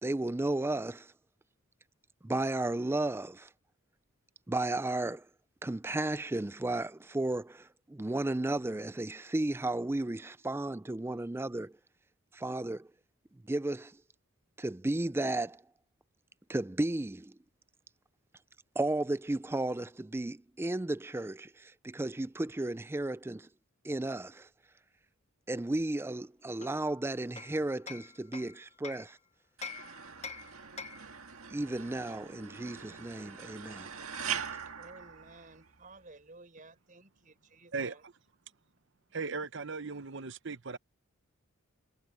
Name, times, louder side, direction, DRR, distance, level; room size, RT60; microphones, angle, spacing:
voice 1, 0.0-1.1 2.2-3.5 4.5-5.3 5.6-11.8 12.3-12.9 13.5-14.0 14.6-15.6 16.5-17.3 18.8-23.5 23.8-24.5 25.5-29.2 31.5-33.9, right 2 dB, 10° right, 0.4 m, -34 dB
Hammer, 26.6-29.1 29.6-31.2, left 5 dB, 30° left, 1.0 m, -45 dB
sound 1, 29.6-35.9, right 7 dB, 75° right, 1.8 m, -42 dB
voice 2, 34.7-38.0, right 2 dB, 40° right, 4.6 m, -54 dB
voice 3, 37.7-38.1 39.1-40.8, right 4 dB, 55° right, 0.9 m, -37 dB
head